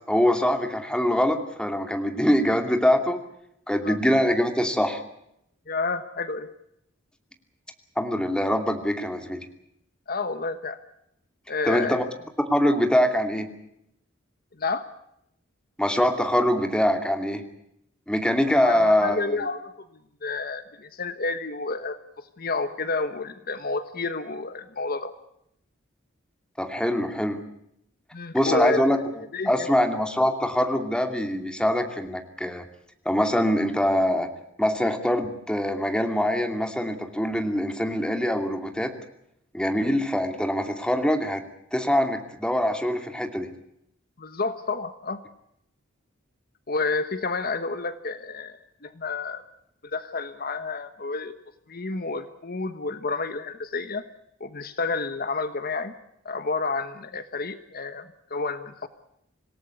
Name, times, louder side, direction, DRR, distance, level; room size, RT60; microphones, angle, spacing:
voice 1, 0.1-3.2 3.7-5.0 8.0-9.4 11.6-12.0 12.4-13.5 15.8-17.4 18.1-19.5 26.6-27.4 28.3-29.0 29.5-32.7 33.0-34.3 34.6-38.9 39.5-41.4 41.7-43.5, equal, 5° left, 6 dB, 2.6 m, -23 dB
voice 2, 5.7-6.5 10.1-10.8 11.5-12.1 14.6-14.8 18.6-19.9 20.2-25.1 28.1-28.9 29.3-29.7 44.2-45.2 46.7-48.6 48.8-49.4 49.8-51.3 51.7-54.0 54.4-55.9 56.2-58.9, left 3 dB, 50° left, 11 dB, 1.2 m, -30 dB
26.5 x 18.0 x 8.3 m, 0.78 s
head